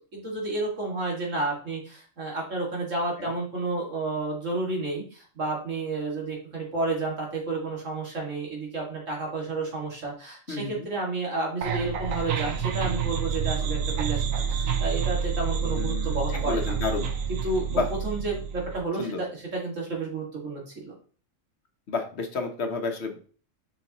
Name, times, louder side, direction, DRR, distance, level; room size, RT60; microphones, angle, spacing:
voice 1, 0.1-16.7 17.3-21.0, right 3 dB, 70° right, -2 dB, 2.6 m, -31 dB
voice 2, 10.5-10.9 15.6-17.1 17.7-17.9 19.0-19.2 21.9-23.2, left 4 dB, 60° left, 5 dB, 1.2 m, -31 dB
sound 1, 11.6-18.8, right 7 dB, 85° right, 1.3 m, -28 dB
6.7 x 5.4 x 3.0 m, 0.41 s
omnidirectional pair, 1.3 m